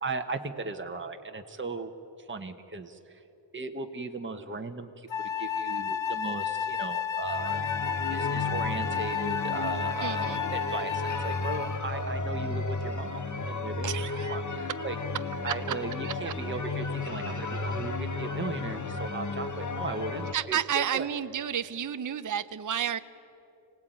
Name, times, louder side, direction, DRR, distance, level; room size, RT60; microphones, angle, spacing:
voice 1, 0.0-1.9 2.3-3.2 3.5-5.1 5.4-7.6 8.1-13.2 13.5-13.9 14.3-15.0 15.4-21.1, right 3 dB, 25° right, 5 dB, 1.3 m, -37 dB
Wind instrument woodwind instrument, 5.1-11.9, left 8 dB, 75° left, 0.9 m, -32 dB
sound 1, 7.2-20.3, left 3 dB, 40° left, 1.3 m, -33 dB
voice 2, 10.0-10.4 13.8-14.4 15.5-15.6 16.0-16.3 20.3-23.0, right 9 dB, 40° right, 12 dB, 0.6 m, -31 dB
25.5 x 18.0 x 9.2 m, 3.0 s
wide cardioid pair, 65°, 46 cm